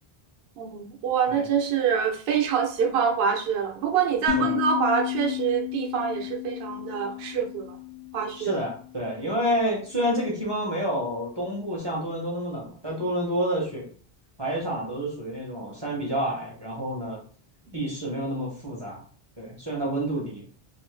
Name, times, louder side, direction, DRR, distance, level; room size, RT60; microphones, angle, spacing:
voice 1, 0.6-7.8 8.1-8.6, right 7 dB, 75° right, 2 dB, 0.8 m, -25 dB
sound 1, 4.3-9.4, left 18 dB, 45° left, 0.5 m, -33 dB
voice 2, 8.4-13.9 14.4-17.2 17.7-19.0 19.4-20.4, equal, 30° right, -3 dB, 0.7 m, -29 dB
2.5 x 2.5 x 3.1 m, 0.43 s
omnidirectional pair, 1.0 m